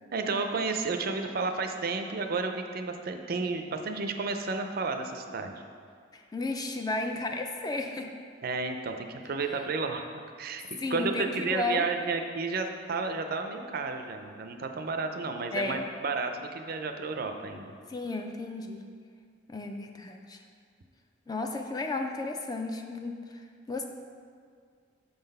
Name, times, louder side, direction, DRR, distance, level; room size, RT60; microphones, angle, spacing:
voice 1, 0.1-5.5 8.4-10.1 10.4-17.7, right 4 dB, 50° right, 6 dB, 0.4 m, -32 dB
voice 2, 6.1-8.1 10.8-11.9 15.5-15.9 17.9-18.8 19.5-20.4 21.3-23.9, left 2 dB, 20° left, 4 dB, 0.3 m, -33 dB
6.8 x 3.9 x 5.4 m, 2.1 s
head